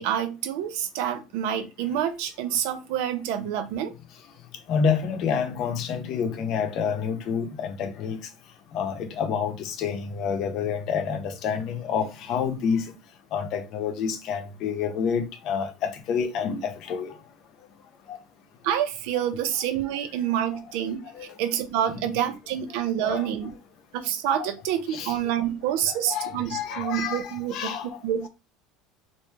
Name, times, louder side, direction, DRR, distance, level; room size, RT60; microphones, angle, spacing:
voice 1, 0.0-3.9 18.6-23.5 23.9-27.7 28.0-28.3, right 10 dB, 70° right, 0.6 m, -27 dB
voice 2, 4.7-8.2 8.7-12.8 13.3-17.1 18.1-18.2 19.1-19.2 21.1-21.3 23.0-23.3 24.4-24.5 24.9-25.2 25.9-27.9, left 6 dB, 45° left, 0.7 m, -28 dB
3.1 x 2.6 x 3.3 m
cardioid pair, 150°, 0 cm